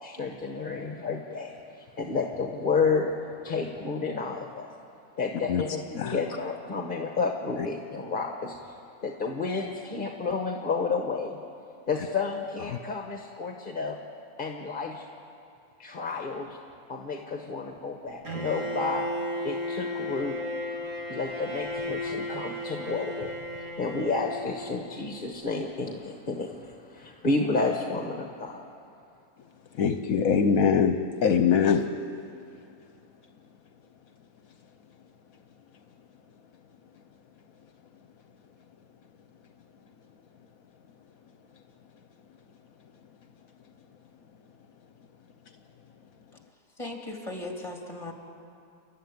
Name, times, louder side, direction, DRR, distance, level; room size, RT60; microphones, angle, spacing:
voice 1, 0.0-3.1 3.4-4.7 5.2-11.4 11.9-14.0 14.4-15.1 15.8-16.6 16.9-19.1 19.4-20.4 21.1-28.6, left 4 dB, 35° left, 2 dB, 1.3 m, -31 dB
Bowed string instrument, 18.2-25.2, left 1 dB, 55° right, 2.7 m, -34 dB
voice 2, 29.8-31.8, left 6 dB, 70° left, 7 dB, 1.2 m, -22 dB
voice 3, 46.8-48.1, left 2 dB, 20° left, 1 dB, 2.8 m, -37 dB
30.0 x 12.5 x 9.5 m, 2.5 s
omnidirectional pair, 1.6 m